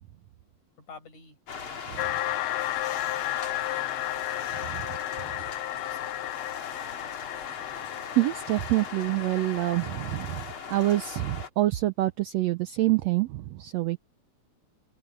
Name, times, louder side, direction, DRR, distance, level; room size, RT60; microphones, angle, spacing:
voice 1, 0.8-1.4 1.9-6.1, left 4 dB, 65° left, 7.0 m, -52 dB
sound 1, 1.5-11.5, left 6 dB, 45° left, 2.8 m, -39 dB
sound 2, 2.0-10.6, left 17 dB, 85° left, 1.6 m, -34 dB
voice 2, 7.8-10.4 10.7-14.0, right 16 dB, 80° right, 1.5 m, -26 dB
open air
omnidirectional pair, 3.7 m